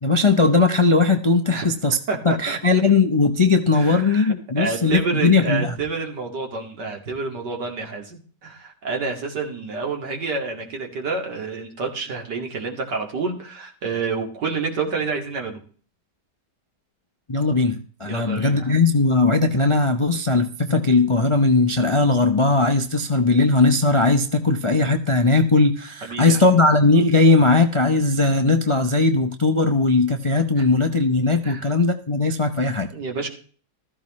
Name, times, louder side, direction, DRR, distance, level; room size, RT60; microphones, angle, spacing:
voice 1, 0.0-2.0 2.2-5.7 17.3-32.9, left 3 dB, 45° left, 6 dB, 0.4 m, -18 dB
voice 2, 2.1-2.6 3.7-15.6 18.0-18.8 26.0-26.6 30.6-30.7 31.4-31.7 32.9-33.3, right 4 dB, 90° right, 2 dB, 2.8 m, -29 dB
14.5 x 13.5 x 3.1 m, 0.43 s
omnidirectional pair, 1.8 m